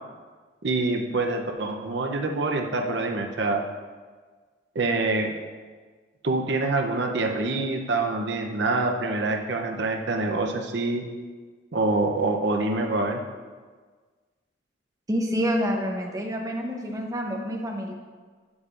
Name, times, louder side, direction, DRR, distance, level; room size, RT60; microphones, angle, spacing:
voice 1, 0.6-3.6 4.7-5.3 6.2-11.0 11.7-13.2, right 2 dB, 60° right, 3 dB, 0.7 m, -26 dB
voice 2, 15.1-17.9, equal, 20° right, 1 dB, 0.7 m, -28 dB
8.2 x 7.1 x 2.5 m, 1.5 s
head